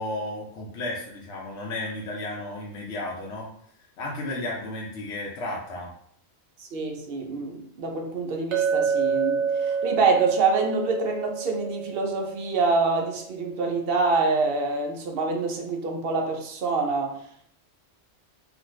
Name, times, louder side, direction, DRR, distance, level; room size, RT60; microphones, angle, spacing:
voice 1, 0.0-3.5 4.0-5.9, left 1 dB, 80° left, -3 dB, 0.9 m, -33 dB
voice 2, 6.6-17.2, right 4 dB, 65° right, 2 dB, 0.7 m, -26 dB
Chink clink, 8.5-13.0, right 6 dB, 85° right, 1.0 m, -28 dB
2.5 x 2.4 x 3.0 m, 0.63 s
omnidirectional pair, 1.2 m